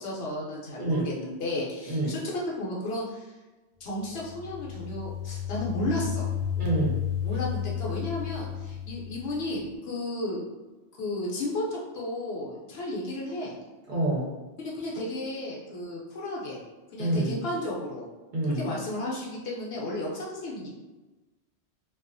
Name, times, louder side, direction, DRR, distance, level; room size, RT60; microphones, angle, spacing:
voice 1, 0.0-3.3 3.8-6.3 7.2-10.4 11.0-13.5 14.6-16.6 16.9-18.1 18.5-20.7, left 1 dB, 65° left, -4 dB, 0.8 m, -33 dB
sound 1, 4.0-9.7, left 9 dB, 85° right, 0.9 m, -33 dB
voice 2, 6.6-7.0 13.9-14.3 17.0-17.4 18.3-18.6, right 1 dB, 50° right, -6 dB, 0.7 m, -27 dB
2.4 x 2.3 x 2.5 m, 1.2 s
omnidirectional pair, 1.2 m